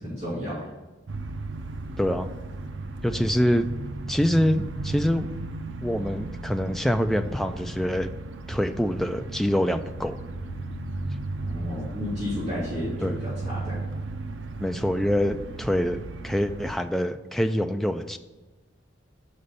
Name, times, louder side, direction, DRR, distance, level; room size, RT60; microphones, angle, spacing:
voice 1, 0.0-0.7 3.1-3.2 11.4-13.8, equal, 40° right, -9 dB, 2.4 m, -32 dB
sound 1, 1.1-16.7, right 2 dB, 75° right, 0.5 m, -35 dB
voice 2, 2.0-2.3 3.0-3.7 4.1-5.3 5.8-8.1 8.5-10.2 13.0-13.1 14.6-18.2, equal, ahead, 7 dB, 0.3 m, -25 dB
6.6 x 5.2 x 5.5 m, 1.2 s
head